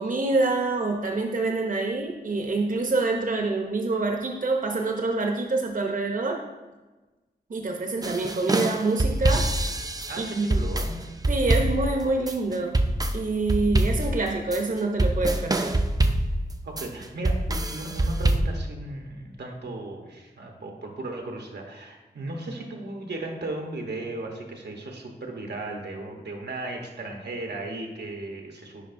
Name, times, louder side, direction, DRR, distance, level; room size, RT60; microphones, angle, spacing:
voice 1, 0.0-6.4 7.5-9.7 10.2-10.7 11.3-12.8 13.1-15.7, right 3 dB, 50° right, 2 dB, 0.8 m, -26 dB
sound 1, 8.0-18.4, right 1 dB, 20° right, 0.5 m, -25 dB
voice 2, 10.1-11.0 16.6-28.9, right 2 dB, 80° right, 2 dB, 1.0 m, -36 dB
10.0 x 4.7 x 2.6 m, 1.2 s
wide cardioid pair, 55°, 17 cm